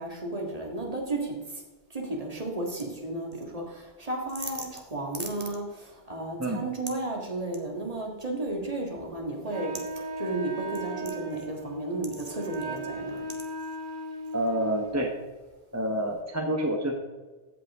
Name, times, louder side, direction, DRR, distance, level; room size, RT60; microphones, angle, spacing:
voice 1, 0.0-1.6 1.9-13.3, right 2 dB, 35° right, 0 dB, 1.9 m, -33 dB
Wind instrument woodwind instrument, 9.5-15.0, right 2 dB, 55° right, 1.0 m, -37 dB
voice 2, 14.3-15.1 15.7-17.0, right 1 dB, 15° right, 1 dB, 0.9 m, -28 dB
15.0 x 5.5 x 3.6 m, 1.3 s
omnidirectional pair, 1.0 m